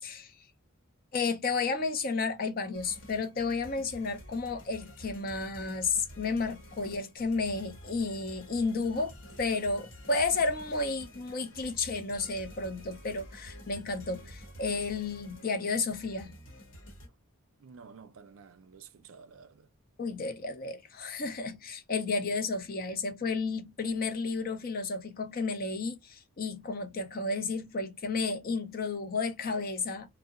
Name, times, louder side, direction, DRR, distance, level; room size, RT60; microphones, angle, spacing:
voice 1, 0.0-0.4 1.1-16.3 20.0-30.1, left 4 dB, 45° left, 0.5 m, -32 dB
sound 1, 2.7-17.1, equal, 65° left, 1.0 m, -49 dB
voice 2, 17.6-19.7, right 5 dB, 75° right, 0.4 m, -52 dB
2.7 x 2.1 x 2.4 m
head